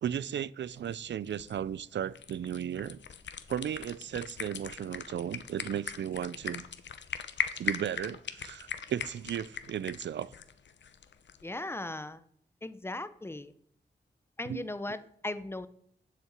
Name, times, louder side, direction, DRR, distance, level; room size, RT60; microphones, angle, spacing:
voice 1, 0.0-3.0 3.5-6.6 7.5-10.3 14.4-14.7, right 9 dB, 80° right, 0.4 m, -35 dB
sound 1, 0.7-11.5, left 7 dB, 85° left, 0.8 m, -40 dB
voice 2, 11.4-12.2 12.6-13.5 14.4-15.7, left 2 dB, 15° left, 0.6 m, -38 dB
7.6 x 6.7 x 8.1 m
wide cardioid pair, 130°, 18 cm